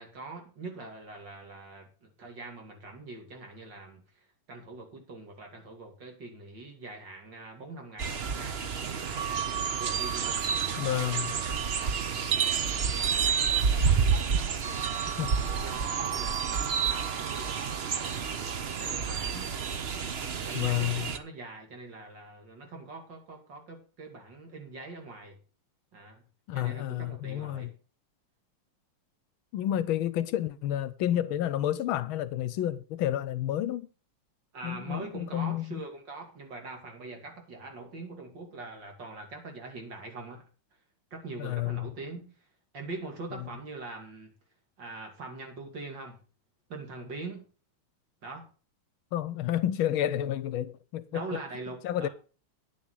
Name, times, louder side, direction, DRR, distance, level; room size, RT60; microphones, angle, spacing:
voice 1, 0.0-14.0 14.3-15.1 15.5-18.4 18.8-19.6 20.1-25.4 25.9-26.2 26.5-27.7 34.5-40.4 41.1-42.3 42.7-44.3 44.8-46.2 46.7-47.5 48.2-48.5 51.1-52.1, right 3 dB, 55° right, 3.1 m, -43 dB
sound 1, 8.0-21.2, right 6 dB, 90° right, 0.5 m, -29 dB
voice 2, 10.8-11.3 15.1-15.3 20.5-21.1 26.5-27.7 29.5-33.9 34.6-35.8 41.4-41.9 49.1-51.4 51.8-52.1, left 12 dB, 75° left, 1.4 m, -30 dB
9.8 x 7.2 x 6.3 m
omnidirectional pair, 2.4 m